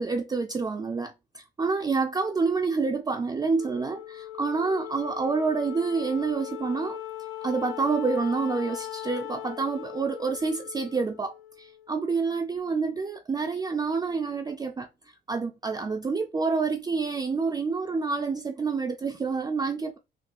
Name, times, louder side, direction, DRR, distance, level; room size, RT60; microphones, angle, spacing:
voice 1, 0.0-7.0 7.4-14.9 15.3-20.0, right 4 dB, 20° right, 0.4 m, -28 dB
Wind instrument woodwind instrument, 3.6-12.1, left 14 dB, 80° left, 0.6 m, -39 dB
3.8 x 2.2 x 2.6 m
cardioid pair, 90°, 20 cm